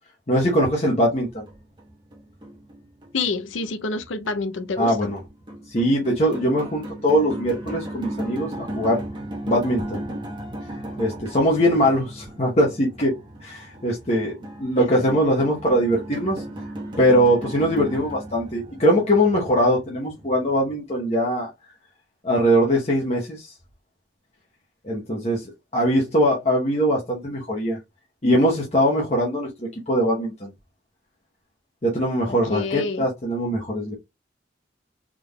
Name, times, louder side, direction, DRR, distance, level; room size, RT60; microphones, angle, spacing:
voice 1, 0.3-1.4 4.8-5.2 5.7-9.0 9.5-10.0 11.0-13.1 13.4-16.4 17.0-21.5 22.2-23.5 24.8-25.4 25.7-27.8 28.2-30.5 31.8-33.9, equal, 35° left, 0.9 m, -21 dB
sound 1, 0.9-20.8, right 1 dB, 25° right, 0.9 m, -37 dB
voice 2, 3.1-5.0 14.7-15.1 32.3-33.1, left 3 dB, 90° left, 0.6 m, -28 dB
3.7 x 3.4 x 2.2 m
head